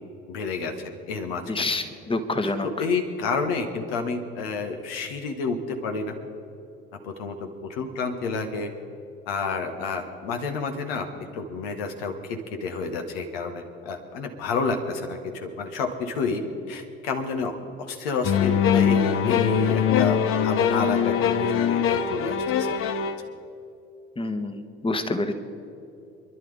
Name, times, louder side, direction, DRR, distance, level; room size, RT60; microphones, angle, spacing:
voice 1, 0.3-1.7 2.4-6.1 7.0-7.4 7.7-8.7 9.3-11.1 11.3-16.4 16.7-17.5 17.8-22.7, left 4 dB, 65° left, 4 dB, 1.8 m, -30 dB
voice 2, 1.5-2.7 24.2-25.3, left 2 dB, 15° left, 8 dB, 1.5 m, -27 dB
sound 1, 18.2-23.2, left 8 dB, 45° left, 0.9 m, -22 dB
28.5 x 11.5 x 3.6 m, 2.9 s
figure-of-eight pair, 60°, 31 cm